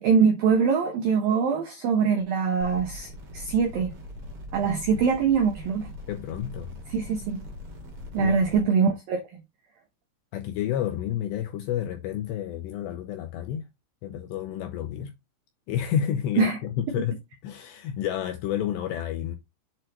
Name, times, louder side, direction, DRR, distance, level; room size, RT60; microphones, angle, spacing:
voice 1, 0.0-3.9 4.5-5.9 6.9-7.4 8.1-9.4 16.4-16.6, right 6 dB, 75° right, 2.1 m, -23 dB
sound 1, 2.6-8.6, left 1 dB, 35° right, 2.7 m, -41 dB
voice 2, 6.1-6.7 8.2-8.3 10.3-13.7 14.0-15.1 15.7-17.2 17.4-19.4, left 10 dB, 80° left, 2.5 m, -30 dB
7.7 x 6.4 x 3.0 m
omnidirectional pair, 5.7 m